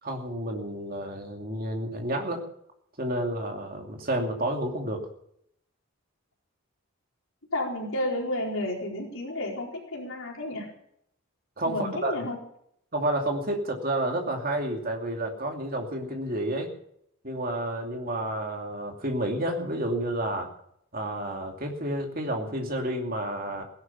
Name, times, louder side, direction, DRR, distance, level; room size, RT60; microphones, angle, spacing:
voice 1, 0.0-2.4 3.0-5.0 11.6-12.1 12.9-16.7 17.2-20.5 20.9-23.6, right 1 dB, 40° right, 2 dB, 2.7 m, -30 dB
voice 2, 7.5-10.7 11.7-12.4, left 1 dB, 70° left, -1 dB, 4.4 m, -31 dB
17.0 x 11.5 x 7.1 m, 0.72 s
head